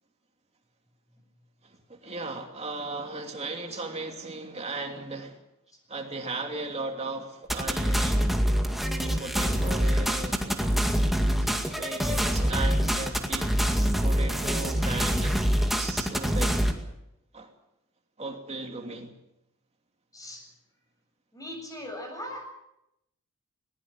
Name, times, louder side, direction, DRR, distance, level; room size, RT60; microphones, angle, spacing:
voice 1, 1.6-5.4 5.9-8.2 9.2-10.7 11.4-11.5 11.8-13.5 14.0-15.5 15.8-16.6 17.3-17.5 18.2-19.1, right 3 dB, 30° right, 3 dB, 2.9 m, -36 dB
sound 1, 7.5-16.7, equal, ahead, 2.1 m, -25 dB
voice 2, 20.1-20.4 21.3-22.5, left 1 dB, 15° left, 3 dB, 7.5 m, -40 dB
21.0 x 20.0 x 7.3 m, 0.84 s
head